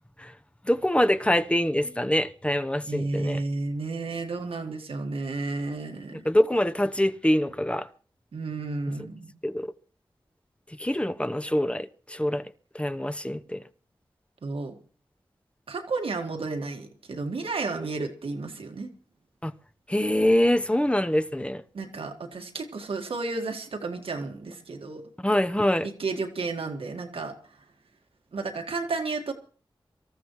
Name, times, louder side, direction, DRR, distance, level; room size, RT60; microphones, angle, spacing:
voice 1, 0.7-3.4 6.2-7.9 9.4-9.7 10.8-12.4 12.7-13.6 19.4-19.5 19.9-21.6 25.2-25.9, left 1 dB, 10° left, 0.8 m, -24 dB
voice 2, 2.9-6.2 8.3-9.3 14.4-14.7 15.7-18.9 21.7-25.0 25.8-27.3 28.3-29.3, right 3 dB, 90° right, 1.8 m, -32 dB
25.0 x 14.0 x 3.1 m
cardioid pair, 50°, 9 cm